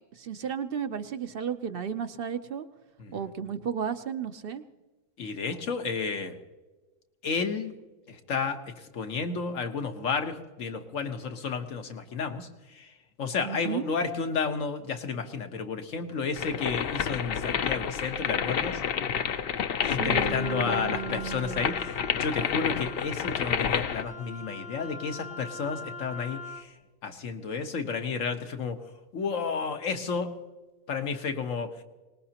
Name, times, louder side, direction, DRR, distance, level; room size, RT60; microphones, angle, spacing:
voice 1, 0.1-2.7 3.1-4.6 13.4-13.9 19.8-21.7, right 7 dB, 55° right, 10 dB, 0.8 m, -33 dB
voice 2, 5.2-6.4 7.2-7.7 8.1-8.6 8.9-12.5 12.7-12.9 13.2-18.8 19.9-26.7 27.0-28.8 29.1-30.3 30.9-31.7, left 5 dB, 80° left, 6 dB, 1.5 m, -32 dB
sound 1, 16.3-24.0, left 7 dB, 55° left, 0.7 m, -29 dB
Wind instrument woodwind instrument, 20.4-26.7, left 3 dB, 5° right, 0.6 m, -42 dB
24.0 x 19.5 x 2.9 m, 1.2 s
omnidirectional pair, 1.3 m